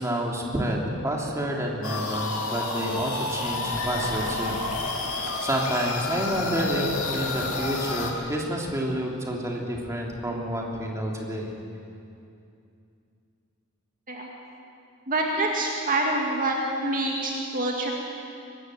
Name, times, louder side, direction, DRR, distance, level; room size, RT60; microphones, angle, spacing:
voice 1, 0.0-4.6 5.0-11.5, equal, 15° right, -1 dB, 3.2 m, -29 dB
sound 1, 1.8-8.1, left 3 dB, 70° left, 3.2 m, -30 dB
voice 2, 15.1-17.9, right 2 dB, 40° right, -1 dB, 2.3 m, -26 dB
24.0 x 19.5 x 7.9 m, 2.6 s
head